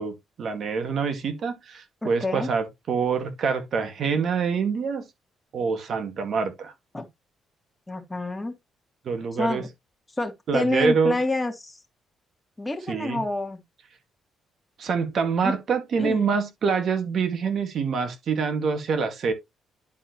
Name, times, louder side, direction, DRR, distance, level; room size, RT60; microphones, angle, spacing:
voice 1, 0.0-5.1 5.5-6.7 9.0-9.6 10.5-11.2 12.9-13.2 14.8-19.3, right 5 dB, 60° right, 2.1 m, -26 dB
voice 2, 2.0-2.5 6.9-7.1 7.9-8.5 9.4-9.7 10.2-11.8 12.6-13.6 15.4-15.5 16.0-16.2, left 2 dB, 10° left, 2.2 m, -28 dB
11.0 x 4.5 x 3.1 m
cardioid pair, 90°, 0 cm